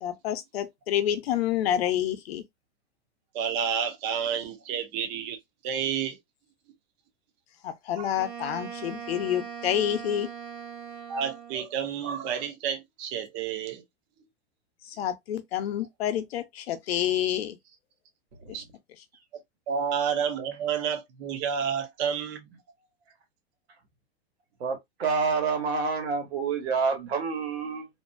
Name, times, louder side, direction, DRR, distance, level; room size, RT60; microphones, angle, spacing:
voice 1, 0.0-2.4 7.6-10.3 14.9-17.6, left 10 dB, 70° left, 0.7 m, -28 dB
voice 2, 3.3-5.4 5.6-6.2 8.0-8.1 11.1-13.8 18.5-18.6 19.7-22.6, right 7 dB, 20° right, 0.4 m, -30 dB
Wind instrument woodwind instrument, 8.1-11.7, right 7 dB, 55° right, 0.9 m, -40 dB
voice 3, 24.6-27.9, right 4 dB, 80° right, 1.2 m, -28 dB
2.6 x 2.2 x 2.5 m
supercardioid pair, 155°, 32 cm